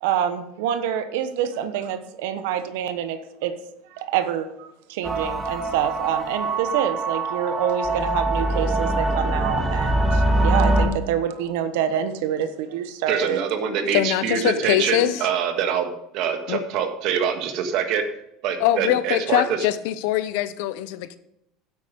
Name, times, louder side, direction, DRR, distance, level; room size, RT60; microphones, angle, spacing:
voice 1, 0.0-3.5 3.9-13.4, right 9 dB, 85° right, 10 dB, 1.1 m, -26 dB
sound 1, 5.0-10.9, right 2 dB, 10° right, 1.4 m, -23 dB
voice 2, 13.1-18.0 18.4-19.4, right 7 dB, 60° right, 6 dB, 1.7 m, -25 dB
voice 3, 13.9-15.3 16.5-16.6 18.6-21.2, left 13 dB, 75° left, 14 dB, 0.7 m, -23 dB
10.0 x 8.2 x 5.2 m, 0.84 s
supercardioid pair, 130°, 0 cm